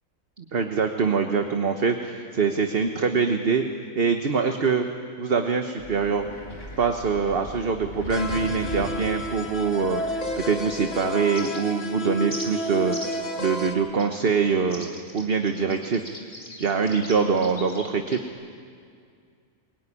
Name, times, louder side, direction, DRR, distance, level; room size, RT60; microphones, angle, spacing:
voice 1, 0.4-3.6 3.9-4.9 5.2-6.3 6.8-16.0 16.6-18.2, right 5 dB, 45° right, 5 dB, 1.3 m, -24 dB
Wind, 5.8-11.0, left 1 dB, 45° left, 2.6 m, -39 dB
sound 1, 8.1-13.7, left 1 dB, 65° left, 2.1 m, -31 dB
sound 2, 11.3-11.9 12.3-12.5 12.9-13.3 14.0-14.1 14.7-18.3, left 1 dB, 20° left, 3.2 m, -40 dB
22.5 x 22.5 x 10.0 m, 2.2 s
omnidirectional pair, 1.4 m